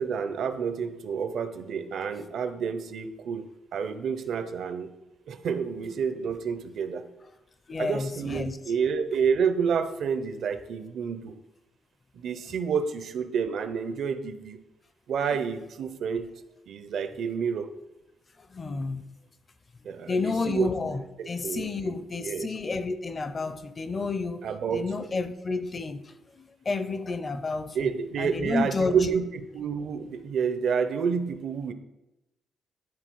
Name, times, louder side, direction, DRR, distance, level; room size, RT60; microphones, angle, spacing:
voice 1, 0.0-4.9 5.3-7.1 7.8-11.4 12.1-14.6 15.1-16.3 16.7-17.7 19.8-22.5 24.4-24.9 27.7-31.7, right 6 dB, 60° right, 10 dB, 0.6 m, -29 dB
voice 2, 7.7-8.6 18.5-19.0 20.1-24.4 24.7-27.9 28.2-29.1, left 3 dB, 30° left, 11 dB, 0.5 m, -30 dB
10.5 x 3.6 x 4.6 m, 0.93 s
cardioid pair, 150°, 0 cm